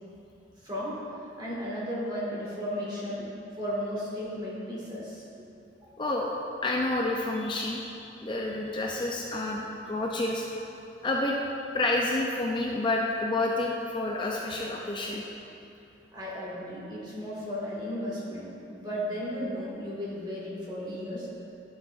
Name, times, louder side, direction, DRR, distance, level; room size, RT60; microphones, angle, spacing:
voice 1, 0.6-1.0 1.4-3.3 3.5-5.2 5.8-5.9 16.1-21.3, equal, 25° right, -7 dB, 1.7 m, -34 dB
voice 2, 6.0-6.4 6.6-10.5 11.0-11.4 11.7-15.2, left 2 dB, 25° left, -1 dB, 0.4 m, -29 dB
11.0 x 6.2 x 2.5 m, 2.7 s
head